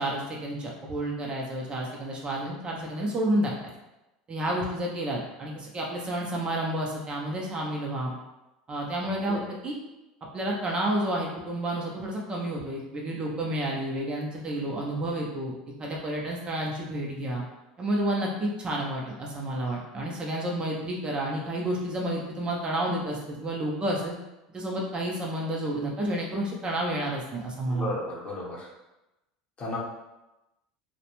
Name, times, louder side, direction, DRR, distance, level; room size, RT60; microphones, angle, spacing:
voice 1, 0.0-3.7 4.3-8.1 8.7-9.8 10.3-17.4 17.8-24.1 24.5-27.9, right 1 dB, 30° right, -2 dB, 0.5 m, -30 dB
voice 2, 27.7-28.7 29.6-29.8, left 1 dB, 35° left, -4 dB, 0.9 m, -34 dB
2.4 x 2.1 x 2.9 m, 0.99 s
hypercardioid pair, 85°, 3 cm